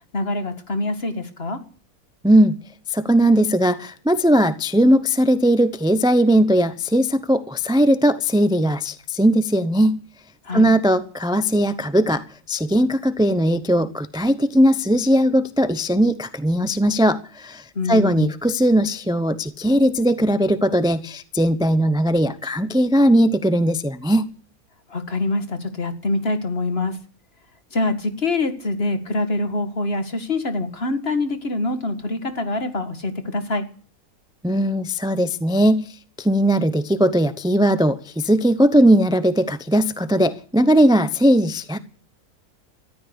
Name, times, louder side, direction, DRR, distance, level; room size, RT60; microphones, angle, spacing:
voice 1, 0.1-1.6 10.4-10.7 17.8-18.3 24.9-27.0 27.7-33.6, left 2 dB, 40° left, 2.1 m, -25 dB
voice 2, 2.2-2.6 2.9-10.0 10.5-24.2 34.4-35.8 36.2-41.8, equal, 5° right, 0.5 m, -18 dB
14.0 x 12.5 x 8.1 m
omnidirectional pair, 1.6 m